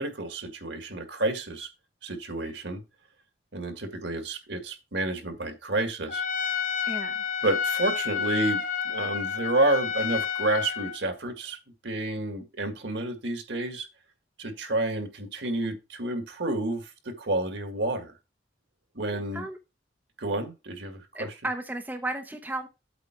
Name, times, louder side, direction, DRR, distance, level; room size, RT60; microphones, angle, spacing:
voice 1, 0.0-1.7 2.0-2.8 3.5-6.2 7.4-11.6 11.8-13.9 14.4-18.1 19.0-19.5 20.2-21.3, right 2 dB, 70° right, 1.9 m, -30 dB
Trumpet, 6.1-11.0, left 7 dB, 45° left, 0.8 m, -30 dB
voice 2, 6.9-7.2 19.1-19.6 21.1-22.7, right 2 dB, 10° right, 0.8 m, -34 dB
8.3 x 3.8 x 5.9 m
head